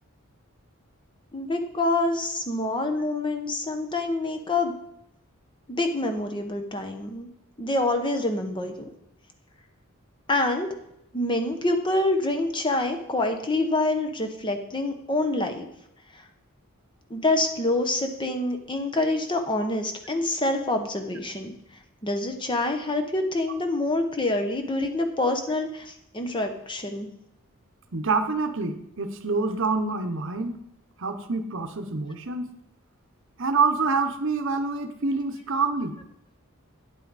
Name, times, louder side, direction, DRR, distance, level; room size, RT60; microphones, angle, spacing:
voice 1, 1.3-4.7 5.7-7.3 7.6-8.9 10.3-10.7 11.1-15.7 17.1-21.5 22.0-27.1, left 2 dB, 20° left, 6 dB, 0.9 m, -26 dB
voice 2, 27.9-30.6 31.0-32.5 33.4-36.0, right 4 dB, 60° right, 7 dB, 0.8 m, -26 dB
9.2 x 8.1 x 4.1 m, 0.77 s
head